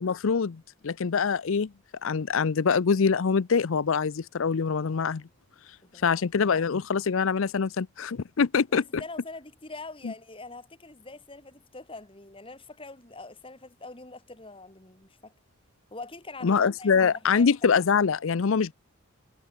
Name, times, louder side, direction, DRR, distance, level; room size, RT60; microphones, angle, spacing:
voice 1, 0.0-1.7 2.0-5.2 6.0-9.0 10.0-10.1 16.4-18.7, left 5 dB, 70° left, 0.5 m, -24 dB
voice 2, 5.8-6.2 8.7-15.3 15.9-17.5 17.8-18.0, left 3 dB, 25° left, 2.5 m, -43 dB
head